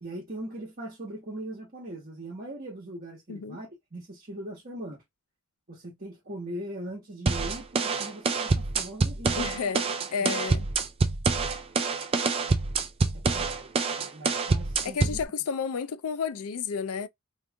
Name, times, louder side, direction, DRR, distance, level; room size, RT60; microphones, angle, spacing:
voice 1, 0.0-5.0 5.7-9.6 10.2-10.4 13.1-15.2, right 1 dB, 40° right, 1.2 m, -40 dB
sound 1, 7.3-15.2, right 4 dB, 25° right, 0.4 m, -26 dB
voice 2, 9.4-9.8 10.1-10.7 14.8-17.1, left 6 dB, 75° left, 0.4 m, -31 dB
2.9 x 2.5 x 3.4 m
head